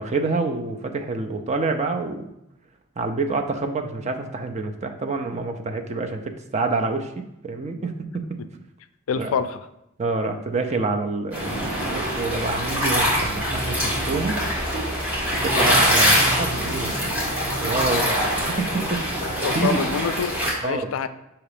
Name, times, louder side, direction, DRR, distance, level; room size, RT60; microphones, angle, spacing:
voice 1, 0.0-2.3 3.0-8.4 9.2-9.3 10.0-14.4 15.2-17.0 17.6-19.8 20.6-20.9, right 3 dB, 35° right, 5 dB, 0.5 m, -27 dB
voice 2, 9.1-9.6 19.2-20.3 20.6-21.1, left 6 dB, 80° left, 12 dB, 0.4 m, -26 dB
sound 1, 11.3-20.5, equal, 10° right, 1.9 m, -23 dB
6.5 x 2.9 x 4.9 m, 0.85 s
head